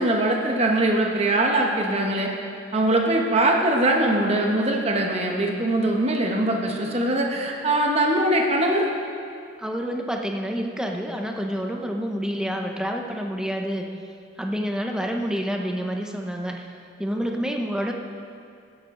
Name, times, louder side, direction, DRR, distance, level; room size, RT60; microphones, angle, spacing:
voice 1, 0.0-2.3 2.7-8.9, right 1 dB, 30° right, 0 dB, 1.1 m, -22 dB
voice 2, 9.6-13.9 14.4-16.7 17.0-17.9, equal, 5° right, 2 dB, 0.7 m, -28 dB
16.5 x 8.9 x 3.8 m, 2.4 s
head